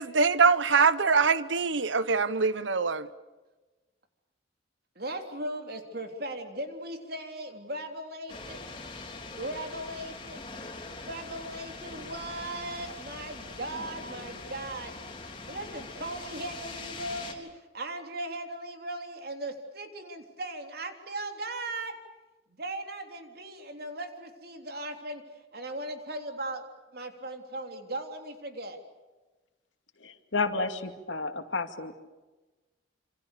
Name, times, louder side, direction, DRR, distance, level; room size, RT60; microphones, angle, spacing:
voice 1, 0.0-3.1, right 5 dB, 85° right, 1.0 m, -23 dB
voice 2, 4.9-8.6 9.3-10.4 10.9-14.9 15.5-21.9 22.6-25.2 25.5-26.6 26.9-28.8, right 1 dB, 55° right, 3.6 m, -38 dB
sound 1, 8.3-17.3, left 3 dB, 25° left, 3.7 m, -42 dB
voice 3, 30.0-32.0, left 3 dB, 90° left, 2.4 m, -31 dB
27.5 x 27.0 x 6.9 m
head